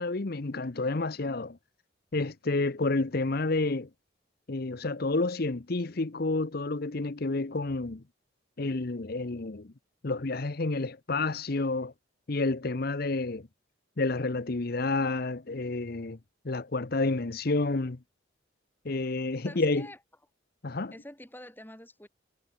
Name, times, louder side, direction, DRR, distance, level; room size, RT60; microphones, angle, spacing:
voice 1, 0.0-1.6 2.1-3.9 4.5-8.0 8.6-9.7 10.0-11.9 12.3-13.5 14.0-16.2 16.4-18.0 18.8-19.9 20.6-20.9, left 3 dB, 50° left, 0.8 m, -29 dB
voice 2, 19.4-20.0 20.9-22.1, left 1 dB, 10° left, 2.7 m, -47 dB
head